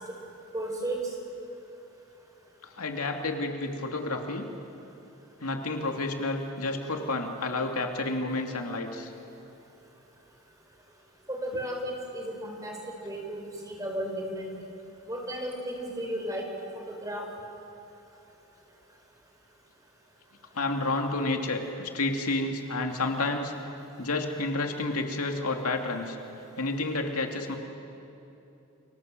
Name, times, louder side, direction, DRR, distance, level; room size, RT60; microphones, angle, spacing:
voice 1, 0.5-1.0 11.3-14.5 15.1-16.5 16.7-17.3, equal, 15° right, 1 dB, 4.5 m, -34 dB
voice 2, 2.8-4.5 5.4-9.1 20.5-23.5 24.0-26.2 26.6-27.6, left 2 dB, 85° left, 3 dB, 2.6 m, -30 dB
30.0 x 24.5 x 7.7 m, 2.9 s
head